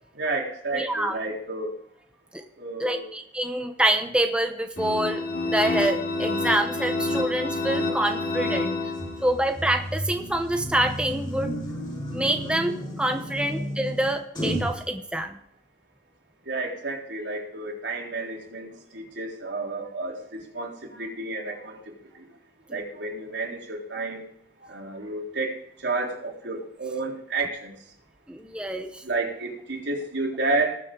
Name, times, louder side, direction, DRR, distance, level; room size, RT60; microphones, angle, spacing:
voice 1, 0.1-1.7 2.6-3.1 16.5-22.3 22.7-24.3 24.6-25.6 25.8-27.7 29.0-30.8, right 3 dB, 80° right, -1 dB, 3.7 m, -31 dB
voice 2, 0.7-1.2 2.3-2.4 2.8-8.7 9.2-11.6 12.1-15.4 22.7-22.8 28.3-29.0, right 1 dB, 5° right, 5 dB, 0.8 m, -26 dB
sound 1, 4.8-9.5, left 2 dB, 60° left, 6.2 m, -28 dB
sound 2, 9.0-14.8, equal, 25° left, 4.7 m, -33 dB
19.5 x 7.6 x 3.8 m, 0.72 s
head